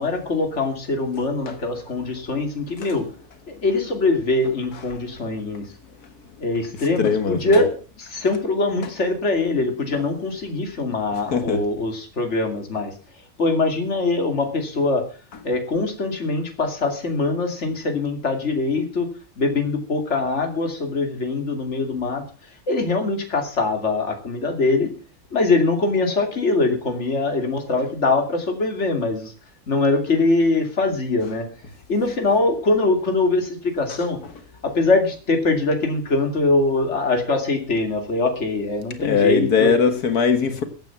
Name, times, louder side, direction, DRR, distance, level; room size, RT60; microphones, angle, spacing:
voice 1, 0.0-3.1 3.5-5.6 6.4-12.9 13.4-15.0 15.4-19.1 19.4-22.2 22.7-24.9 25.3-29.3 29.7-31.5 31.9-34.2 34.6-39.8, left 3 dB, 50° left, 2.9 m, -22 dB
voice 2, 7.0-7.6 9.9-10.0 11.3-11.6 39.0-40.6, left 5 dB, 85° left, 2.1 m, -20 dB
15.0 x 9.3 x 5.9 m
omnidirectional pair, 1.6 m